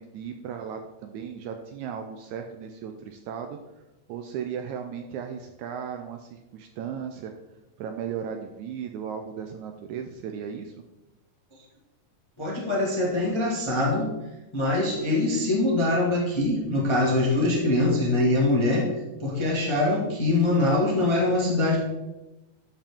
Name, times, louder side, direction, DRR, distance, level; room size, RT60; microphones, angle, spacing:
voice 1, 0.0-3.6 4.1-7.3 7.8-10.7, right 7 dB, 80° right, 5 dB, 1.8 m, -36 dB
voice 2, 12.4-14.1 14.5-18.8 19.2-21.8, left 2 dB, 20° left, -4 dB, 0.7 m, -23 dB
13.0 x 4.9 x 3.6 m, 1.0 s
omnidirectional pair, 3.8 m